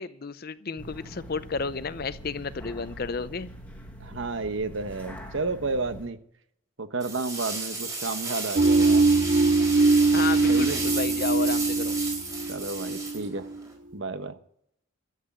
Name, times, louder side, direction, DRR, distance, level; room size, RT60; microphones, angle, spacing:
voice 1, 0.0-3.5 10.1-12.0, left 4 dB, 45° left, 0.6 m, -32 dB
sound 1, 0.8-6.1, equal, 5° left, 1.7 m, -43 dB
voice 2, 4.0-6.2 6.8-9.1 10.5-10.8 12.5-13.5 13.9-14.4, right 3 dB, 65° right, 1.1 m, -31 dB
sound 2, 7.0-13.7, right 3 dB, 15° right, 4.2 m, -34 dB
sound 3, 8.6-13.6, right 3 dB, 40° right, 0.7 m, -22 dB
12.5 x 8.3 x 9.0 m
head